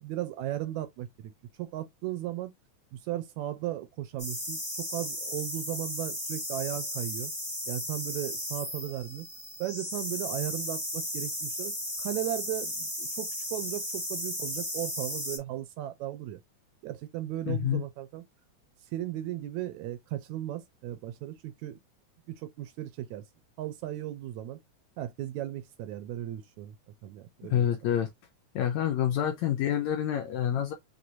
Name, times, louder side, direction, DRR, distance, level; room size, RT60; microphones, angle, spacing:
voice 1, 0.0-1.3 1.6-2.5 2.9-7.3 7.7-9.3 9.6-16.4 16.8-18.2 18.9-21.8 22.3-23.3 23.6-24.6 25.0-26.7 27.0-27.7, right 13 dB, 80° right, 1.8 m, -36 dB
sound 1, 4.2-15.4, equal, 5° left, 1.1 m, -35 dB
voice 2, 17.5-17.8 27.5-28.1 28.5-30.7, left 10 dB, 75° left, 1.8 m, -27 dB
6.1 x 3.1 x 2.5 m
omnidirectional pair, 3.6 m